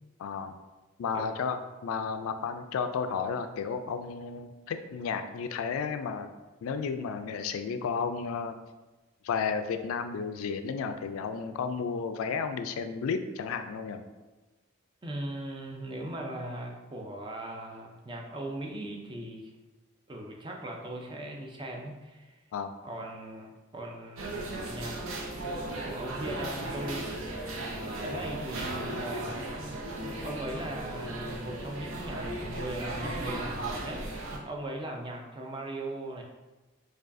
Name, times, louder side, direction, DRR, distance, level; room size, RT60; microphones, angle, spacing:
voice 1, 0.2-0.6 1.0-6.3 6.6-8.6 9.2-14.1 22.5-22.7, left 5 dB, 85° left, 8 dB, 0.3 m, -33 dB
voice 2, 15.0-19.5 20.1-22.4 22.8-25.0 25.8-27.1 28.0-29.5 30.2-34.0 34.3-36.2, right 1 dB, 25° right, 0 dB, 0.4 m, -39 dB
sound 1, 24.2-34.4, right 1 dB, 75° right, 0.7 m, -36 dB
4.7 x 2.3 x 2.5 m, 1.2 s
head